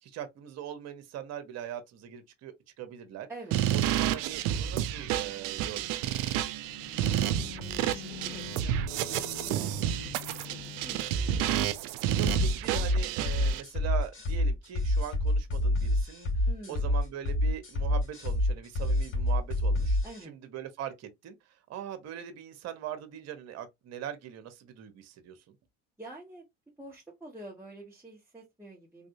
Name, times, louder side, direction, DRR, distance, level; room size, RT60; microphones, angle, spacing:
voice 1, 0.0-3.3 3.7-6.2 12.1-16.3 16.7-21.4 21.7-25.6, right 10 dB, 55° right, 1.0 m, -41 dB
voice 2, 3.3-3.6 7.6-11.9 16.5-16.9 20.0-20.3 26.0-26.4 26.8-29.1, right 2 dB, 10° right, 1.3 m, -48 dB
sound 1, 3.5-13.6, right 11 dB, 75° right, 0.6 m, -30 dB
sound 2, 6.5-11.3, left 10 dB, 90° left, 0.5 m, -45 dB
sound 3, 12.3-20.2, left 1 dB, 40° left, 2.3 m, -27 dB
3.4 x 2.6 x 2.6 m
hypercardioid pair, 75°, 31 cm